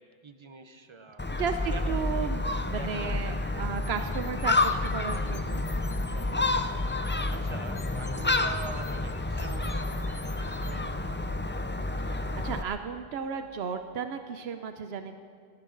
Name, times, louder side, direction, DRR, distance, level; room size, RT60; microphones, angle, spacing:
voice 1, 0.0-1.4 1.7-2.1 2.4-3.5 6.0-6.7 7.3-11.2, right 4 dB, 30° right, 9 dB, 0.8 m, -45 dB
Gull seagull, 1.2-12.6, left 2 dB, 20° left, 0.3 m, -29 dB
voice 2, 1.4-5.6 12.0-15.2, right 6 dB, 90° right, 8 dB, 1.0 m, -34 dB
sound 1, 3.8-6.3 6.6-10.7, left 3 dB, 40° left, 1.0 m, -50 dB
18.0 x 17.5 x 3.9 m, 2.3 s
omnidirectional pair, 1.0 m